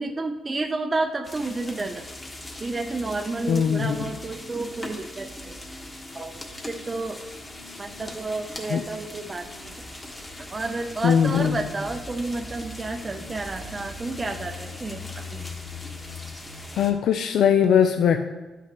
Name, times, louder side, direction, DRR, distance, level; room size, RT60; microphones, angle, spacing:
voice 1, 0.0-2.0 2.6-5.6 6.1-7.2 7.8-9.7 10.5-15.5, right 3 dB, 25° right, 3 dB, 0.6 m, -31 dB
sound 1, 1.2-16.9, left 2 dB, 20° left, 1.4 m, -39 dB
voice 2, 3.5-4.1 8.7-8.8 11.0-11.7 16.7-18.2, left 8 dB, 70° left, 6 dB, 0.5 m, -20 dB
11.5 x 5.8 x 3.0 m, 1.2 s
cardioid pair, 90°, 0 cm